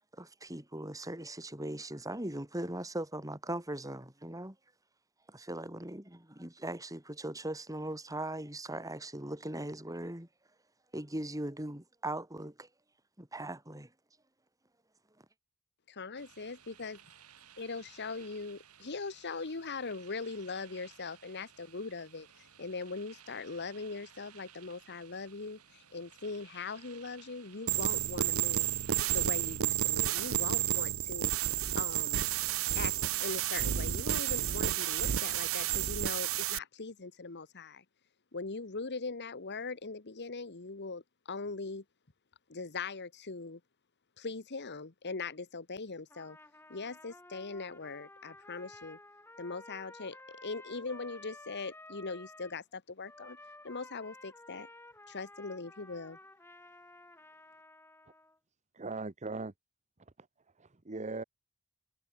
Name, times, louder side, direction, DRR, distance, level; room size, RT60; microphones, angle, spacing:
voice 1, 0.1-4.6 5.3-10.3 10.9-12.7 13.2-13.9, right 1 dB, 15° right, 4.0 m, -39 dB
voice 2, 15.9-17.0 17.6-22.3 22.6-28.7 29.1-31.3 31.8-32.2 32.8-32.9 33.2-37.8 38.3-41.0 41.3-41.8 42.5-43.6 44.2-46.4 46.7-49.0 49.4-53.4 53.6-54.7 55.1-56.2, left 4 dB, 50° left, 1.3 m, -41 dB
sound 1, 16.2-29.6, right 9 dB, 85° right, 5.4 m, -58 dB
sound 2, 27.7-36.6, right 12 dB, 65° right, 0.7 m, -31 dB
Trumpet, 46.1-52.6 53.0-58.4, left 2 dB, 10° left, 6.9 m, -53 dB
voice 3, 58.7-59.5 60.2-60.3 60.6-61.2, right 3 dB, 30° right, 0.9 m, -39 dB
head